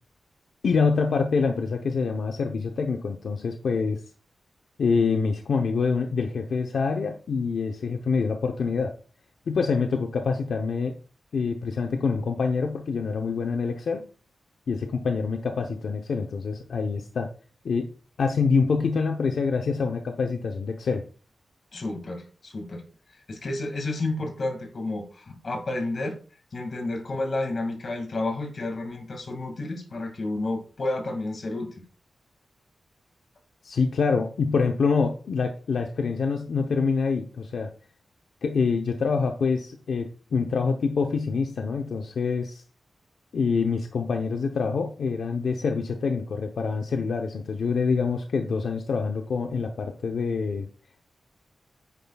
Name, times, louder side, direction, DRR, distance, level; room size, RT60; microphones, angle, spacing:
voice 1, 0.6-4.0 4.8-8.9 9.5-10.9 11.3-14.0 14.7-17.3 17.6-17.9 18.2-21.0 33.6-37.7 38.4-42.6 43.3-50.7, left 5 dB, 75° left, 4 dB, 0.8 m, -26 dB
voice 2, 21.7-22.8 23.3-26.2 26.5-31.7, left 2 dB, 45° left, 3 dB, 2.1 m, -31 dB
9.9 x 9.0 x 2.3 m, 0.37 s
wide cardioid pair, 165°, 0 cm